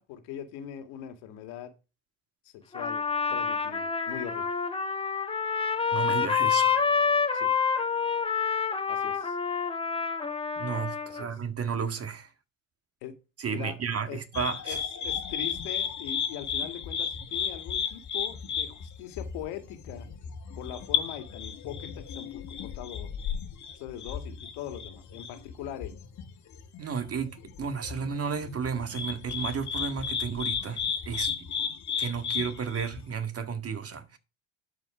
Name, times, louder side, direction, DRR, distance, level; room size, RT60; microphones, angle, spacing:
voice 1, 0.0-1.7 2.4-3.0 3.3-4.5 7.3-7.5 8.9-9.4 11.1-11.3 13.0-13.1 13.5-13.8 14.1-14.2 14.6-20.1 20.6-23.1 23.7-25.9, left 10 dB, 70° left, 2.2 m, -41 dB
Trumpet, 2.7-11.2, left 6 dB, 15° left, 1.7 m, -28 dB
voice 2, 5.9-6.9 10.6-12.3 13.4-14.8 26.8-31.5 32.0-34.2, right 6 dB, 35° right, 1.8 m, -33 dB
sound 1, 14.3-33.1, left 7 dB, 45° left, 1.8 m, -34 dB
12.0 x 5.1 x 4.9 m
hypercardioid pair, 75°, 40 cm